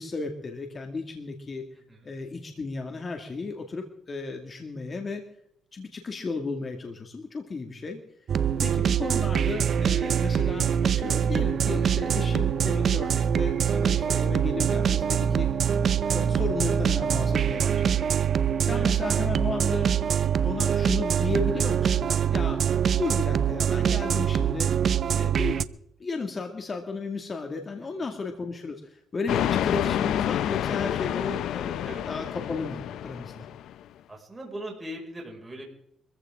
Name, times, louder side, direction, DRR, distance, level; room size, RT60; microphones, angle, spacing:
voice 1, 0.0-1.6 2.0-5.2 5.7-8.0 8.6-15.5 16.1-18.0 18.6-19.9 20.4-22.6 23.0-24.7 25.1-25.6 26.0-33.3, left 3 dB, 35° left, 3 dB, 2.2 m, -34 dB
voice 2, 1.7-2.1 18.7-19.0 28.0-28.2 31.8-32.0 34.1-35.6, right 1 dB, 15° right, -1 dB, 5.8 m, -40 dB
sound 1, 8.3-25.6, right 8 dB, 55° right, 0.7 m, -24 dB
sound 2, 29.3-33.8, left 11 dB, 80° left, 0.6 m, -28 dB
24.0 x 15.0 x 3.7 m, 0.74 s
cardioid pair, 90°, 0 cm